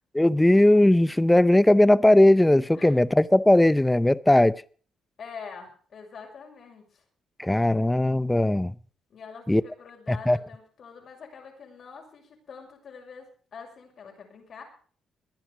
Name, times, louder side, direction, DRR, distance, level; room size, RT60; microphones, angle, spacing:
voice 1, 0.1-4.6 7.4-8.7 9.5-9.6 10.1-10.4, left 1 dB, 10° left, 0.6 m, -19 dB
voice 2, 5.2-7.0 9.1-14.6, left 5 dB, 55° left, 6.5 m, -45 dB
21.5 x 10.5 x 5.1 m
cardioid pair, 90°, 0 cm